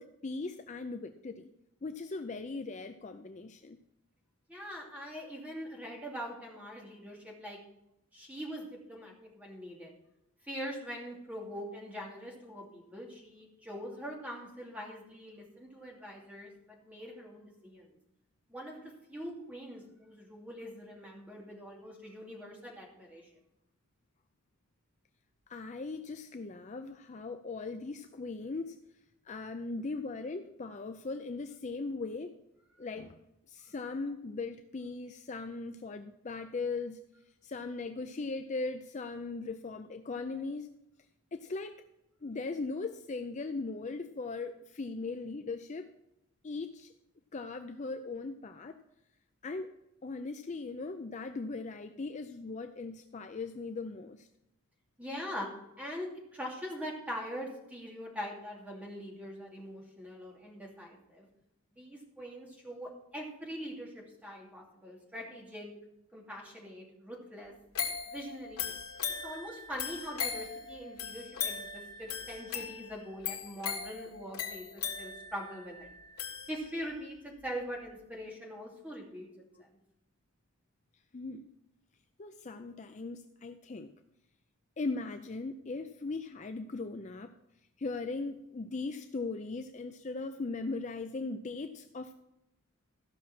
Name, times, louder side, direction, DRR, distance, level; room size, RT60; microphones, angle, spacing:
voice 1, 0.0-1.5 1.8-3.8 25.5-28.8 29.2-32.4 32.8-33.2 33.5-37.0 37.4-40.7 41.3-41.8 42.2-45.9 46.4-46.9 47.3-48.8 49.4-54.3 81.1-81.5 82.2-83.9 84.8-87.4 87.8-92.1, left 3 dB, 35° left, 7 dB, 0.4 m, -39 dB
voice 2, 4.5-7.6 8.1-9.9 10.4-17.9 18.5-23.3 55.0-61.3 61.8-65.7 66.1-67.5 68.1-68.7 69.2-75.9 76.5-79.3 79.6-79.7, equal, 5° right, -2 dB, 2.6 m, -43 dB
sound 1, 67.7-77.0 77.5-77.6, left 7 dB, 90° left, 1.8 m, -39 dB
14.5 x 6.0 x 6.0 m, 0.87 s
head